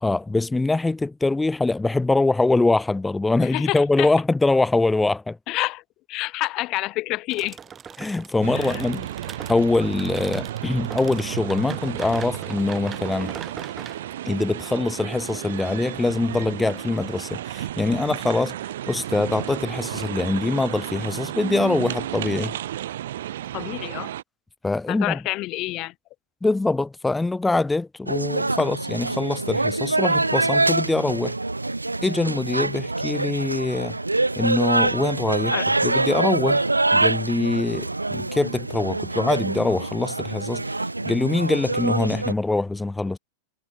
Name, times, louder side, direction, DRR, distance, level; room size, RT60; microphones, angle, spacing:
voice 1, 0.0-5.4 8.0-9.1 9.5-13.3 14.3-18.6 18.9-22.6 24.6-25.2 26.4-31.4 32.0-34.0 34.4-35.6 35.8-36.6 36.9-40.6 41.1-43.2, left 2 dB, 10° left, 0.3 m, -23 dB
voice 2, 3.4-4.1 5.5-5.8 6.1-7.6 8.5-8.8 23.5-24.1 24.9-25.9 35.5-35.7, left 19 dB, 40° left, 0.9 m, -28 dB
sound 1, 7.3-16.0, right 7 dB, 20° right, 4.8 m, -41 dB
sound 2, 8.4-24.2, right 12 dB, 60° right, 1.1 m, -33 dB
sound 3, 28.1-42.3, right 2 dB, 85° right, 0.7 m, -25 dB
figure-of-eight pair, 90°, 0 cm